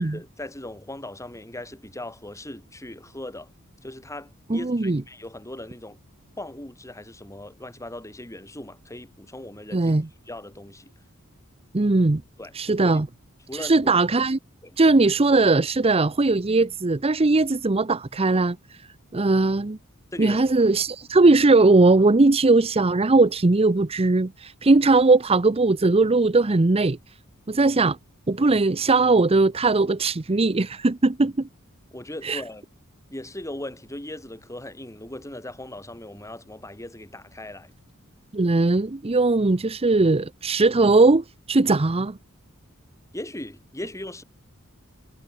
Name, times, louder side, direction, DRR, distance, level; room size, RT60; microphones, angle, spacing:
voice 1, 0.0-3.5 3.8-6.0 6.4-9.9 10.3-10.9 12.4-12.5 12.8-13.0 13.5-13.9 14.6-14.8 20.1-20.4 31.9-32.7 33.1-37.7 43.1-44.2, left 1 dB, 15° left, 6.1 m, -38 dB
voice 2, 4.5-5.0 9.7-10.1 11.7-12.2 12.5-13.1 13.5-14.4 14.8-18.6 19.1-19.8 20.2-27.0 27.5-28.0 28.3-31.5 32.2-32.4 38.3-42.2, right 3 dB, 25° right, 0.7 m, -19 dB
head